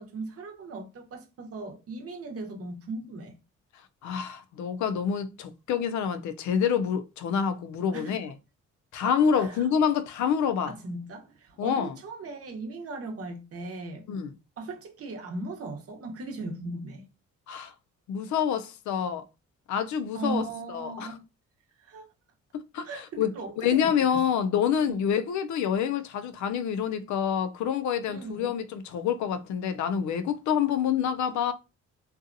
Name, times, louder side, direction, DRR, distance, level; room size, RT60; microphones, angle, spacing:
voice 1, 0.0-3.3 7.9-8.1 9.3-9.7 10.6-14.0 14.6-17.1 20.1-21.2 21.8-22.1 22.8-24.2 24.9-25.0 28.1-28.5, right 2 dB, 50° right, 0.9 m, -38 dB
voice 2, 4.0-8.3 8.9-10.7 11.6-11.9 14.1-14.3 17.5-17.7 18.1-19.3 19.7-21.2 22.5-31.5, left 8 dB, 70° left, 0.5 m, -27 dB
2.7 x 2.3 x 2.5 m
cardioid pair, 90°, 30 cm